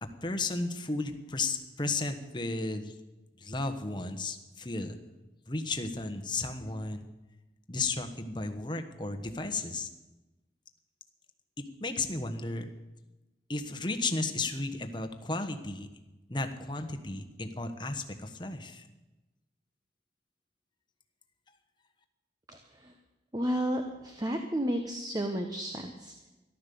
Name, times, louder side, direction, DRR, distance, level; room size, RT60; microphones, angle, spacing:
voice 1, 0.0-2.9 3.4-5.0 5.5-7.1 7.7-9.9 11.8-12.7 13.5-15.9 16.3-18.8, left 3 dB, 25° left, 7 dB, 1.2 m, -34 dB
voice 2, 22.5-22.9 23.3-26.3, equal, 20° right, 5 dB, 1.0 m, -32 dB
14.0 x 12.0 x 6.9 m, 1.1 s
head